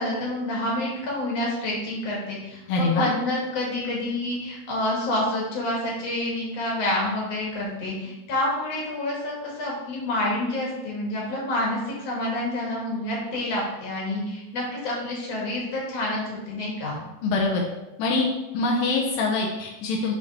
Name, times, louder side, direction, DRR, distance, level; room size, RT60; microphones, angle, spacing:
voice 1, 0.0-17.0, left 1 dB, 45° left, -3 dB, 2.4 m, -28 dB
voice 2, 2.7-3.1 17.2-17.6 18.0-18.3 18.5-20.1, left 3 dB, 85° left, -1 dB, 1.9 m, -24 dB
6.9 x 6.3 x 3.5 m, 0.98 s
omnidirectional pair, 5.2 m